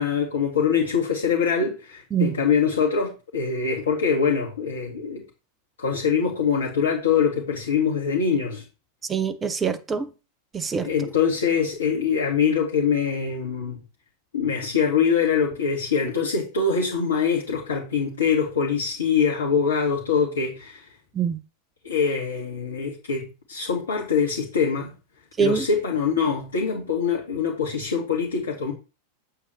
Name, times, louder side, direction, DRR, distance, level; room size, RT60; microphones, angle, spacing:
voice 1, 0.0-5.2 5.8-8.6 10.8-13.8 14.3-20.9 21.8-24.9 25.4-28.7, left 6 dB, 65° left, 2.3 m, -24 dB
voice 2, 9.1-10.1 10.5-10.9 21.1-21.4 25.4-25.7, right 7 dB, 20° right, 1.0 m, -24 dB
8.9 x 8.2 x 3.3 m
figure-of-eight pair, 90°, 0 cm